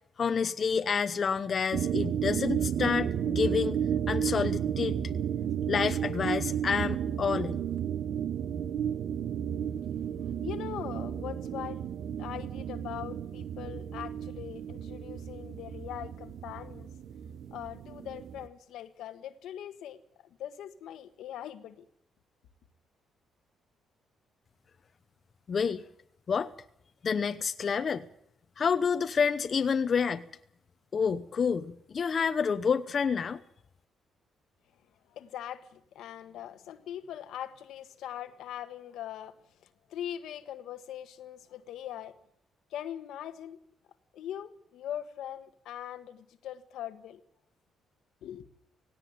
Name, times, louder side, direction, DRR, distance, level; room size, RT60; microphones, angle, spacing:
voice 1, 0.2-3.8 4.1-5.0 5.7-7.6 25.5-25.8 26.3-26.5 27.0-28.1 28.6-30.3 30.9-33.4, left 6 dB, 45° left, 0.9 m, -28 dB
sound 1, 1.7-18.5, right 9 dB, 65° right, 1.1 m, -33 dB
voice 2, 10.4-11.9 12.2-16.9 17.5-20.0 20.4-21.9 35.1-39.3 39.9-42.1 42.7-43.6 44.1-47.2 48.2-48.5, left 11 dB, 80° left, 1.4 m, -41 dB
17.5 x 17.0 x 9.5 m
cardioid pair, 90°, 0 cm